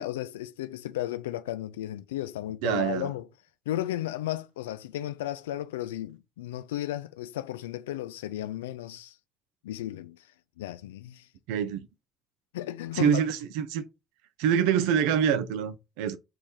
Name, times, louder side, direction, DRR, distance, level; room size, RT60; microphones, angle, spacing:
voice 1, 0.0-3.3 3.7-9.1 9.6-10.2 10.6-11.3 12.5-13.2, left 13 dB, 80° left, 0.3 m, -34 dB
voice 2, 2.6-3.1 11.5-11.9 12.9-13.8 14.4-16.2, right 8 dB, 75° right, 0.5 m, -25 dB
3.6 x 3.2 x 4.1 m
hypercardioid pair, 50°, 0 cm